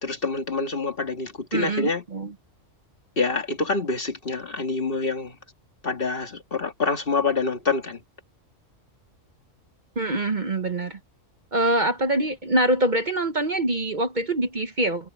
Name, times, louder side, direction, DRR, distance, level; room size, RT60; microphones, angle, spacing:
voice 1, 0.0-2.0 3.2-5.3 5.8-8.0, left 3 dB, 45° left, 2.2 m, -26 dB
voice 2, 1.5-2.3 10.0-11.0 11.5-15.1, right 1 dB, 40° right, 1.1 m, -24 dB
omnidirectional pair, 1.3 m